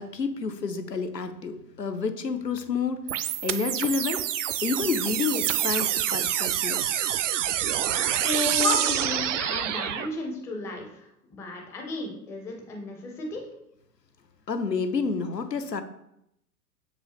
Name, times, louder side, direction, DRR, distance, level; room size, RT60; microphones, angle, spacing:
voice 1, 0.0-3.0 3.4-4.2 4.6-6.8 8.6-8.8 14.5-15.8, left 5 dB, 90° left, 9 dB, 0.8 m, -29 dB
sound 1, 3.1-10.1, right 11 dB, 50° right, 0.5 m, -27 dB
voice 2, 8.1-10.9 11.3-13.4, left 2 dB, 5° left, 1 dB, 0.4 m, -33 dB
6.7 x 4.7 x 3.0 m, 0.80 s
figure-of-eight pair, 100°, 48 cm